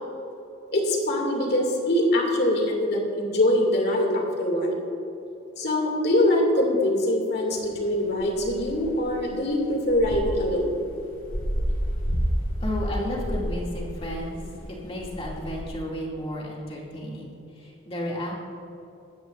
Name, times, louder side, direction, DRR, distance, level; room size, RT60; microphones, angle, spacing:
voice 1, 0.7-4.8 5.6-10.7, left 1 dB, 55° left, -1 dB, 2.4 m, -23 dB
sound 1, 7.5-15.6, equal, 90° left, 2.6 m, -30 dB
voice 2, 12.6-18.3, left 1 dB, 30° left, -4 dB, 2.4 m, -33 dB
21.5 x 9.4 x 2.5 m, 2.9 s
head